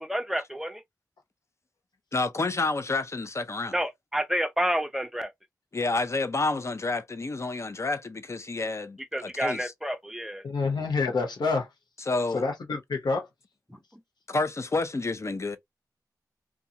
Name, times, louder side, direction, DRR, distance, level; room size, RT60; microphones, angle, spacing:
voice 1, 0.1-0.8 3.7-5.3 9.1-10.4 13.7-13.8, equal, 5° right, 0.6 m, -29 dB
voice 2, 2.1-3.7 5.7-9.7 12.0-12.4 14.3-15.6, left 3 dB, 40° left, 0.5 m, -29 dB
voice 3, 10.4-11.7 12.3-13.3, left 4 dB, 85° left, 0.8 m, -27 dB
2.5 x 2.3 x 2.7 m
wide cardioid pair, 65°, 7 cm